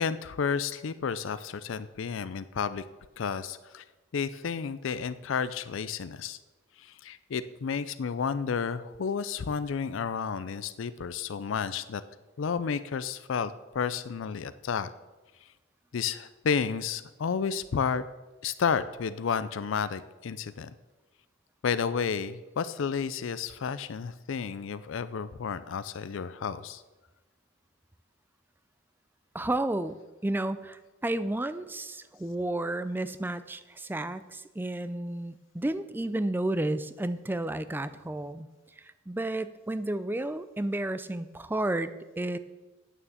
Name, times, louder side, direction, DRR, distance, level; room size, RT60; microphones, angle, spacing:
voice 1, 0.0-2.8 3.2-3.8 4.1-6.4 6.8-12.0 12.4-14.9 15.9-18.0 18.4-20.7 21.6-26.8, left 6 dB, 70° left, 14 dB, 0.4 m, -31 dB
voice 2, 29.3-38.5 38.8-42.4, right 1 dB, 10° right, 13 dB, 0.4 m, -32 dB
9.1 x 6.8 x 7.2 m, 1.2 s
head